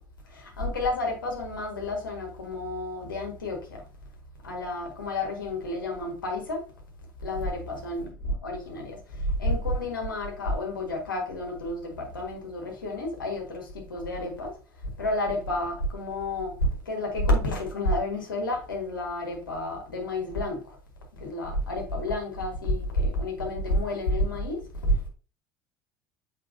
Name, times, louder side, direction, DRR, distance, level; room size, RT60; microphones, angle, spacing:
voice 1, 0.2-3.8 4.4-6.7 7.2-14.6 15.0-20.8 21.1-25.1, left 1 dB, 80° left, 1.7 m, -30 dB
7.4 x 4.7 x 2.7 m
figure-of-eight pair, 65°, 11 cm